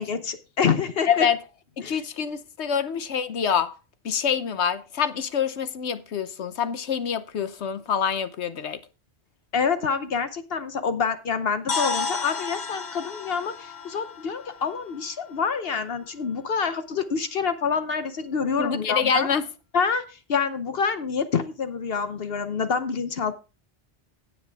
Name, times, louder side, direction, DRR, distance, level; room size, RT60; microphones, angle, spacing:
voice 1, 0.0-1.3 1.8-2.0 9.5-19.3 19.7-23.3, left 5 dB, 65° left, 1.0 m, -27 dB
voice 2, 1.1-1.4 1.8-3.7 4.0-8.8 18.6-19.5, left 7 dB, 85° left, 1.2 m, -26 dB
sound 1, 11.7-15.6, left 4 dB, 45° left, 1.2 m, -32 dB
17.0 x 5.7 x 3.4 m
omnidirectional pair, 1.1 m